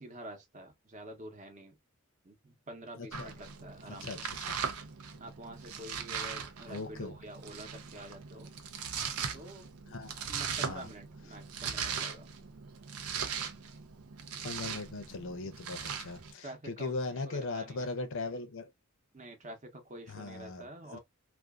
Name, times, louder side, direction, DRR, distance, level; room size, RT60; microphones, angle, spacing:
voice 1, 0.0-1.8 2.2-4.3 5.2-8.5 9.3-9.7 10.3-12.3 15.7-15.9 16.4-17.9 19.1-21.0, right 1 dB, 35° right, 0.8 m, -48 dB
voice 2, 3.0-3.3 3.9-4.2 4.4-4.6 6.7-7.1 9.9-10.3 10.6-10.9 14.4-18.7 20.1-20.7 20.9-21.0, left 3 dB, 65° left, 0.6 m, -39 dB
Domestic sounds home sounds, 3.1-16.3, right 6 dB, 85° right, 0.6 m, -39 dB
2.5 x 2.3 x 2.2 m
head